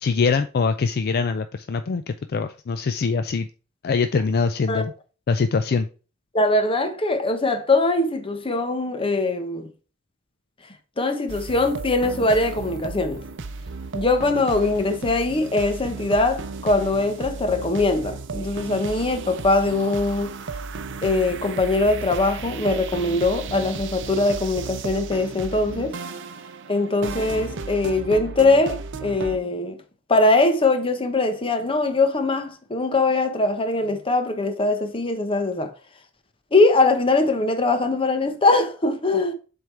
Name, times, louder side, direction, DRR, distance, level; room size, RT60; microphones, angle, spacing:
voice 1, 0.0-3.5 3.8-4.9 5.3-5.9, left 5 dB, 50° left, 0.4 m, -23 dB
voice 2, 6.3-9.7 11.0-13.2 13.9-20.3 21.0-26.0 26.7-29.8 30.1-35.7 36.5-39.3, left 2 dB, 25° left, 0.9 m, -21 dB
sound 1, 11.3-29.4, right 4 dB, 60° right, 0.6 m, -34 dB
7.7 x 3.6 x 4.5 m
head